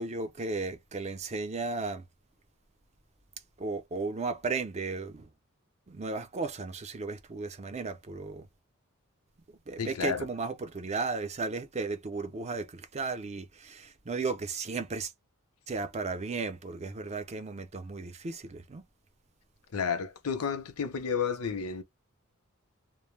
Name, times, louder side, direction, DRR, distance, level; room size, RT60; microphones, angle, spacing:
voice 1, 0.0-2.0 3.6-5.3 5.9-8.5 9.7-15.1 15.7-18.8, right 3 dB, 30° right, 0.5 m, -35 dB
voice 2, 9.8-10.3 19.7-21.8, left 6 dB, 90° left, 0.7 m, -31 dB
2.1 x 2.1 x 3.2 m
head